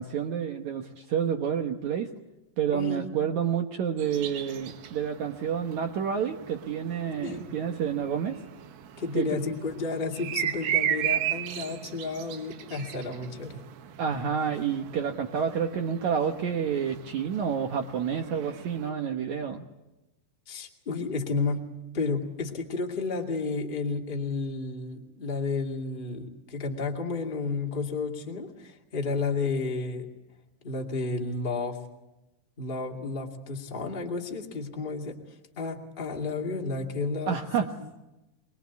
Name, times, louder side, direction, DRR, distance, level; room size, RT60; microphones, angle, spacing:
voice 1, 0.0-2.1 2.6-8.4 9.1-9.3 14.0-19.6 37.3-37.7, right 7 dB, 75° right, 5 dB, 1.7 m, -29 dB
voice 2, 2.7-3.1 7.2-7.5 9.0-13.6 20.5-21.6 21.9-30.1 30.6-31.8 32.6-35.2 35.5-37.4 37.8-38.0, left 3 dB, 20° left, 1 dB, 1.5 m, -32 dB
sound 1, 4.0-18.9, right 11 dB, 90° right, 3.6 m, -36 dB
23.5 x 22.0 x 8.3 m, 0.99 s
omnidirectional pair, 4.9 m